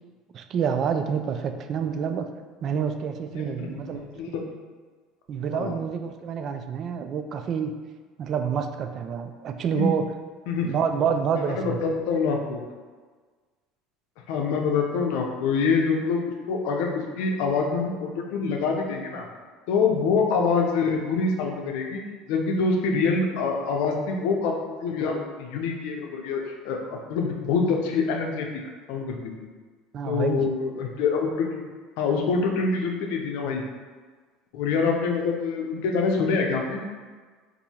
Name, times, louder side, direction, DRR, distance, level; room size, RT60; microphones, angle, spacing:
voice 1, 0.3-2.3 2.6-4.1 5.3-7.7 8.2-10.1 10.6-11.8 29.9-30.5, right 7 dB, 50° right, 7 dB, 0.3 m, -28 dB
voice 2, 3.3-4.5 5.5-5.7 9.7-9.9 10.5-10.7 11.6-12.6 14.3-16.2 16.5-19.3 19.7-22.0 22.3-28.5 28.9-29.5 30.1-31.7 32.0-33.6 34.5-36.8, left 4 dB, 75° left, 1 dB, 0.6 m, -25 dB
2.7 x 2.6 x 4.1 m, 1.4 s
supercardioid pair, 90°, 0 cm